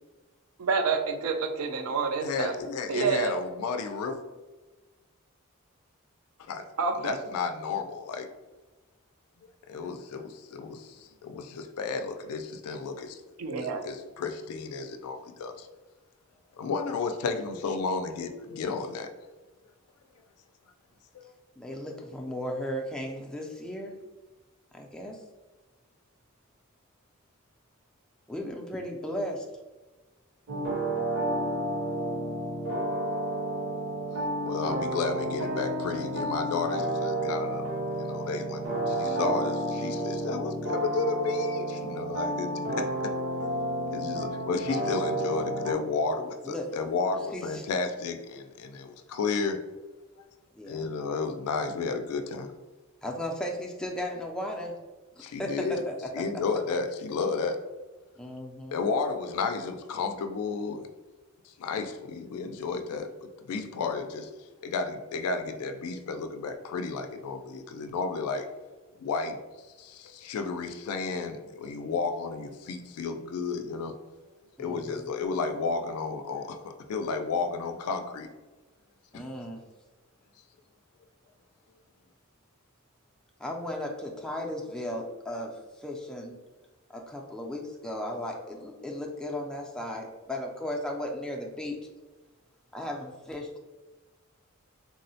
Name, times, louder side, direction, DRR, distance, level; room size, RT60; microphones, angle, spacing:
voice 1, 0.6-2.5 2.9-3.3 6.8-7.2 13.4-13.8, right 5 dB, 75° right, 6 dB, 0.4 m, -28 dB
voice 2, 2.2-4.2 6.4-6.7 7.0-8.3 9.7-13.2 13.6-15.7 16.6-19.1 21.1-21.3 34.4-37.7 38.0-43.1 43.9-49.6 50.7-52.5 55.2-55.8 56.1-57.6 58.7-60.9 61.4-64.3 64.6-68.5 69.0-69.4 69.8-73.9 74.6-78.3 79.1-79.2, left 4 dB, 85° left, 7 dB, 0.3 m, -32 dB
voice 3, 21.6-23.9 24.7-25.2 28.3-29.5 46.4-46.7 47.3-47.6 50.6-50.8 53.0-54.7 55.2-56.2 58.2-58.8 74.6-75.1 79.1-79.6 83.4-85.5 85.8-86.4 86.9-91.8 92.7-93.6, left 1 dB, 5° left, 0 dB, 0.3 m, -35 dB
sound 1, 30.5-45.7, right 1 dB, 60° right, 0.8 m, -31 dB
3.6 x 2.0 x 2.6 m, 1.2 s
head